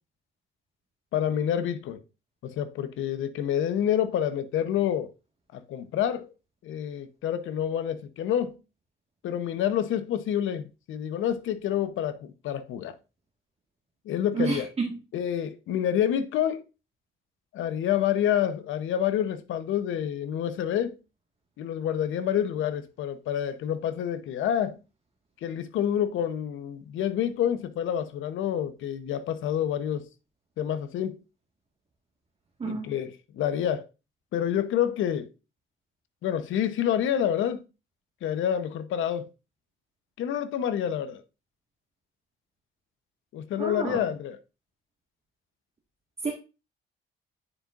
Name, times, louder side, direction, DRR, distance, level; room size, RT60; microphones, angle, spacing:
voice 1, 1.1-2.0 2.4-5.1 5.5-6.3 6.6-8.6 9.2-12.9 14.1-14.7 15.1-16.6 17.5-21.0 21.6-24.8 25.4-30.1 30.6-31.2 32.6-33.8 34.3-35.3 36.2-37.6 38.2-39.3 40.2-41.2 43.3-44.4, left 10 dB, 80° left, 0.8 m, -28 dB
voice 2, 14.3-14.9 32.6-33.0 43.6-44.0 46.2-46.3, right 4 dB, 30° right, 1.6 m, -29 dB
9.9 x 5.3 x 2.4 m
cardioid pair, 90°, 20 cm